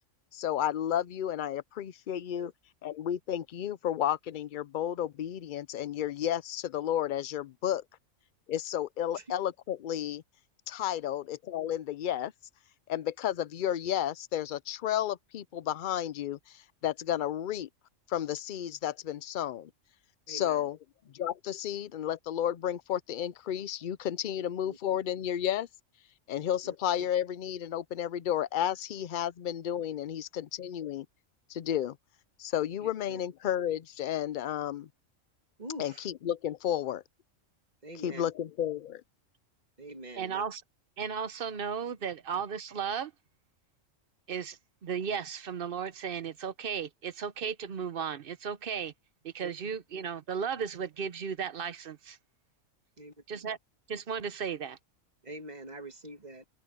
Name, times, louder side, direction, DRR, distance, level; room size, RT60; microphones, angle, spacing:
voice 1, 0.3-2.5 2.8-7.8 8.5-10.2 10.7-12.3 12.9-17.7 18.1-19.7 20.3-20.8 21.2-25.7 26.3-31.1 31.5-32.0 32.4-34.9 35.8-37.0 38.0-39.0, left 10 dB, 60° left, 0.5 m, -32 dB
voice 2, 20.3-20.7 24.4-24.8 26.6-27.1 32.8-33.3 35.6-36.1 37.8-38.3 39.8-40.4 49.4-49.5 53.0-53.1 55.2-56.5, right 1 dB, 30° right, 2.1 m, -45 dB
voice 3, 40.2-40.6 41.0-43.1 44.3-48.9 49.2-52.2 53.3-53.6 53.9-54.8, right 7 dB, 50° right, 0.9 m, -35 dB
open air
omnidirectional pair, 1.4 m